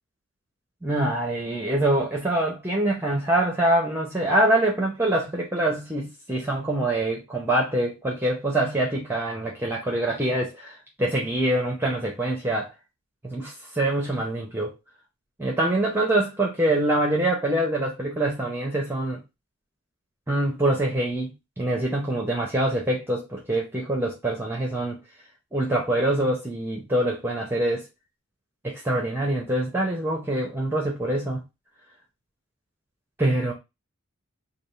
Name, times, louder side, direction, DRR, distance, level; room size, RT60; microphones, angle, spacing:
voice 1, 0.8-12.7 13.2-14.7 15.4-19.2 20.3-21.3 21.6-25.0 25.5-27.8 28.6-31.4 33.2-33.5, right 1 dB, 10° right, 0.6 m, -25 dB
3.4 x 2.3 x 4.0 m
head